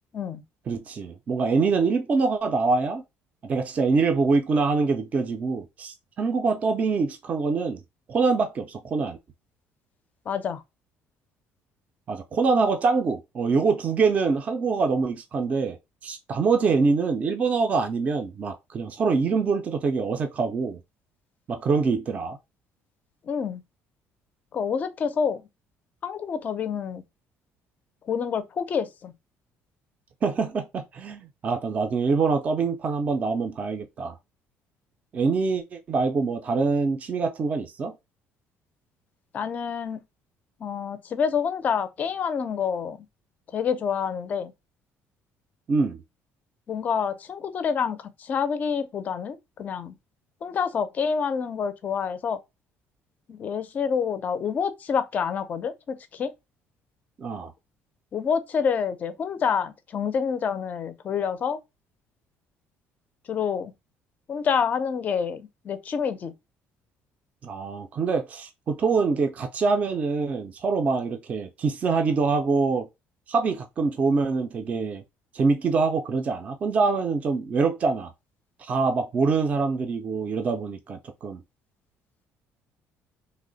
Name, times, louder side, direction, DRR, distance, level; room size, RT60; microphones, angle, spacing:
voice 1, 0.7-3.0 3.4-7.8 8.1-9.2 12.1-15.8 16.0-20.8 21.5-22.4 30.2-34.2 35.1-37.9 45.7-46.0 57.2-57.5 67.4-72.9 73.3-75.0 75.3-78.1 78.6-81.4, right 4 dB, 30° right, 0.4 m, -25 dB
voice 2, 10.3-10.6 23.3-23.6 24.5-25.4 26.0-27.0 28.1-29.1 39.3-40.0 40.6-43.0 43.5-44.5 46.7-49.9 50.4-52.4 53.3-56.3 58.1-61.6 63.3-63.7 64.3-66.3, left 6 dB, 30° left, 0.4 m, -27 dB
3.0 x 2.1 x 3.8 m
cardioid pair, 170°, 5 cm